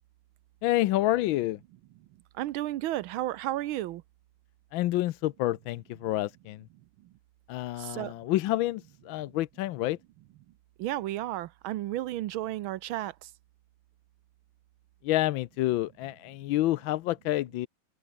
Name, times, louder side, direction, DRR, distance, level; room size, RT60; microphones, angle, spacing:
voice 1, 0.6-1.6 4.7-6.6 7.5-10.0 15.0-17.7, left 15 dB, 75° left, 1.3 m, -28 dB
voice 2, 2.4-4.0 7.8-8.1 10.8-13.3, right 14 dB, 75° right, 1.5 m, -33 dB
open air
omnidirectional pair, 2.3 m